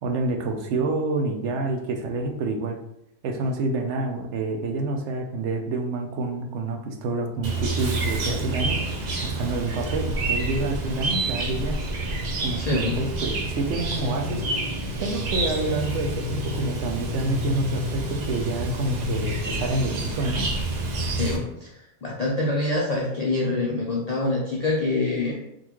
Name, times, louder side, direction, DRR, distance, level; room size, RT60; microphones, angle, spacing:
voice 1, 0.0-2.8 3.2-11.8 12.4-14.4 15.0-20.5, right 2 dB, 75° right, 3 dB, 0.9 m, -28 dB
Chirp tweet, 7.4-21.4, right 1 dB, 55° right, 0.5 m, -28 dB
voice 2, 12.6-13.0 21.1-21.7 22.0-25.4, left 2 dB, 50° left, -3 dB, 0.5 m, -25 dB
3.8 x 2.5 x 3.0 m, 0.82 s
omnidirectional pair, 1.2 m